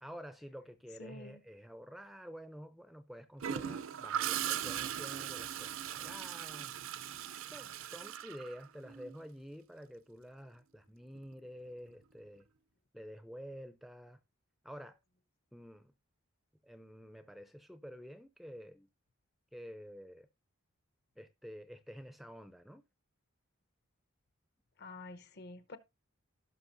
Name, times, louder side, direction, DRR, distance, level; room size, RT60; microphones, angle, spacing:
voice 1, 0.0-6.7 7.5-12.5 12.9-14.2 14.6-15.0 15.5-15.9 16.6-18.9 19.5-20.3 21.2-22.8, equal, ahead, 0.4 m, -49 dB
voice 2, 1.0-1.4 24.8-25.8, left 2 dB, 50° left, 0.8 m, -48 dB
Gurgling / Toilet flush, 3.4-9.1 11.2-11.4, right 10 dB, 70° right, 0.5 m, -39 dB
16.0 x 5.9 x 2.6 m
head